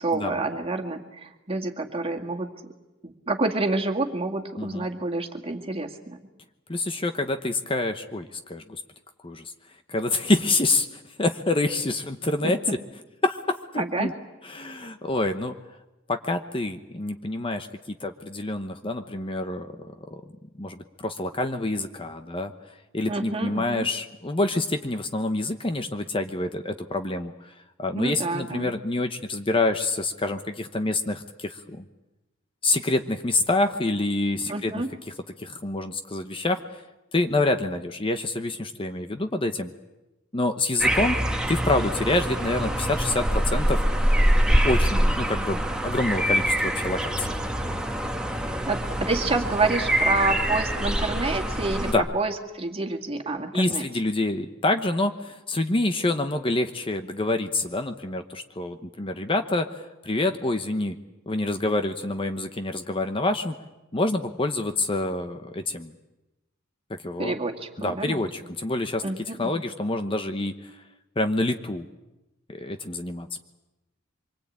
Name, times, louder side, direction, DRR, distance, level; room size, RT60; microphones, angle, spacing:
voice 1, 0.0-2.7 3.0-6.2 12.4-12.7 13.8-14.1 23.1-23.9 28.0-28.7 34.5-34.9 48.4-53.8 67.2-68.3 69.0-69.6, right 2 dB, 30° right, 3 dB, 2.2 m, -28 dB
voice 2, 6.7-8.8 9.2-9.5 9.9-12.6 13.2-14.1 14.4-15.5 16.1-19.7 20.6-22.5 22.9-27.3 27.8-31.8 32.6-34.8 35.4-36.6 37.1-39.7 40.3-41.2 41.5-43.8 44.6-47.3 51.9-52.1 53.5-61.0 61.3-63.5 63.9-65.9 66.9-67.4 67.8-70.7 71.2-71.9 72.5-73.4, left 2 dB, 25° left, 7 dB, 1.0 m, -27 dB
sound 1, 40.8-51.9, equal, 5° right, 1.5 m, -24 dB
25.0 x 23.5 x 8.7 m, 1.0 s
head